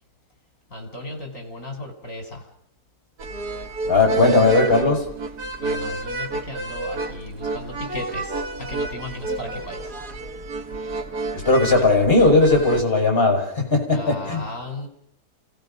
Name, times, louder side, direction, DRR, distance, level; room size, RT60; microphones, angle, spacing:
voice 1, 0.7-2.5 5.6-10.0 13.9-14.9, left 1 dB, 55° left, 4 dB, 4.6 m, -35 dB
sound 1, 3.2-12.8, right 2 dB, 85° right, 2.0 m, -30 dB
voice 2, 3.8-5.0 11.3-14.4, left 3 dB, 35° left, 1 dB, 5.9 m, -18 dB
29.0 x 17.0 x 5.4 m, 0.67 s
omnidirectional pair, 1.6 m